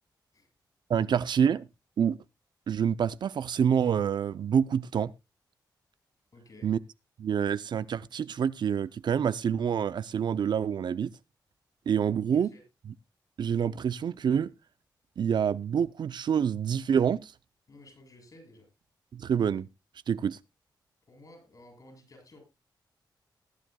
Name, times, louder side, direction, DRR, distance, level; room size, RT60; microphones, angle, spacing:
voice 1, 0.9-1.7 2.0-2.2 2.7-5.1 6.6-6.8 7.2-11.1 11.9-12.5 13.4-14.5 15.2-17.3 19.1-19.7 20.1-20.4, right 8 dB, 65° right, 0.5 m, -27 dB
voice 2, 6.3-6.7 12.0-12.6 17.7-18.7 21.1-22.4, left 1 dB, 50° left, 6.9 m, -54 dB
20.5 x 9.2 x 2.2 m
cardioid pair, 90°, 8 cm